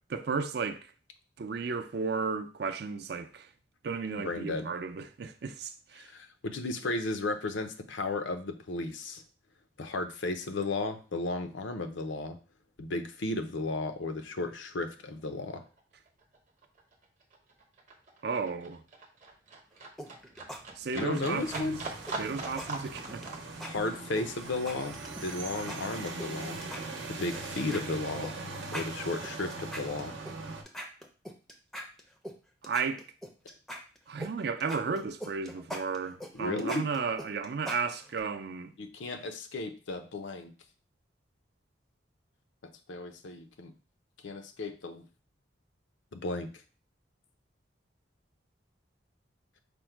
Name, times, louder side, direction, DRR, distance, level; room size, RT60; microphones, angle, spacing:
voice 1, 0.1-0.9 1.4-3.5 3.8-6.1 18.2-18.8 20.8-21.8 22.2-23.2 32.6-33.0 34.1-38.7, right 5 dB, 55° right, 0.4 m, -34 dB
voice 2, 4.2-4.7 6.0-9.2 9.8-12.4 12.8-15.6 20.9-21.8 23.6-25.0 25.2-26.6 27.1-28.3 28.7-30.1 36.3-36.8 38.8-40.5 42.6-43.7 44.2-45.1 46.1-46.5, left 2 dB, 80° left, 0.6 m, -34 dB
Livestock farm animals working animals, 15.1-15.2 15.5-26.5 26.8-27.8 28.1-28.2, right 3 dB, 40° right, 0.8 m, -43 dB
sound 1, 20.0-20.6 20.9-21.2 21.5-21.6 22.1-23.3 23.6-23.7 24.2-25.4 25.7-26.3 26.6-27.4 27.7-27.8 28.2-28.3 28.6-30.3 30.7-32.4 32.6-34.3 34.6-38.2, equal, ahead, 0.5 m, -41 dB
sound 2, 21.1-30.6, right 3 dB, 80° right, 0.8 m, -41 dB
5.1 x 2.1 x 4.5 m
head